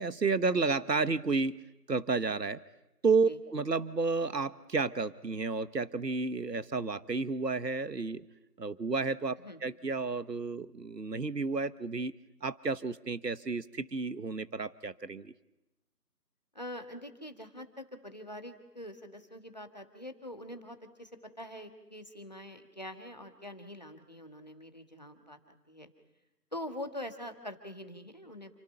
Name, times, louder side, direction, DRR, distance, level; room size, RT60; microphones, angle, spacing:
voice 1, 0.0-1.6 1.9-2.6 3.0-8.2 8.6-9.4 9.6-12.1 12.4-15.3, right 4 dB, 90° right, 14 dB, 1.2 m, -31 dB
voice 2, 16.6-21.1 21.4-25.4 25.7-25.9 26.5-28.6, left 1 dB, 25° left, 6 dB, 1.6 m, -44 dB
29.0 x 25.5 x 5.8 m, 0.96 s
figure-of-eight pair, 175°, 48 cm